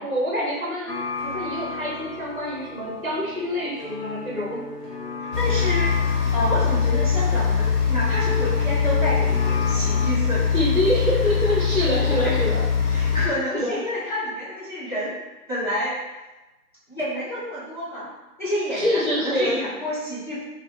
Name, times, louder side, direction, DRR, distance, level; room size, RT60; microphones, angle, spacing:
voice 1, 0.0-4.6 10.5-12.6 13.5-13.8 18.7-19.6, equal, 40° right, -5 dB, 0.4 m, -26 dB
sound 1, 0.9-10.1, left 3 dB, 90° left, 0.7 m, -35 dB
sound 2, 5.3-13.3, left 6 dB, 60° left, 0.9 m, -22 dB
voice 2, 5.4-10.6 11.8-12.5 12.8-15.2 15.5-16.0 16.9-18.1 18.4-20.4, equal, 35° left, -8 dB, 0.6 m, -29 dB
2.2 x 2.1 x 3.3 m, 1.1 s
figure-of-eight pair, 150°, 47 cm